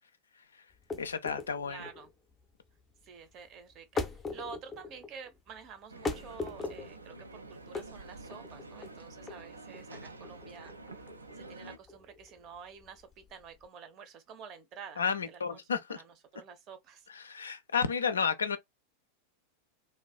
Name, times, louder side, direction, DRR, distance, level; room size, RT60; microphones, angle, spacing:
sound 1, 0.7-13.7, left 3 dB, 15° left, 0.5 m, -41 dB
voice 1, 1.0-1.9 15.0-16.0 17.1-18.6, left 6 dB, 70° left, 0.3 m, -32 dB
voice 2, 1.6-2.1 3.0-10.7 11.3-17.1, right 6 dB, 35° right, 0.6 m, -49 dB
sound 2, 5.9-11.8, right 2 dB, 80° right, 0.3 m, -48 dB
2.6 x 2.3 x 2.3 m
figure-of-eight pair, 90°, 0 cm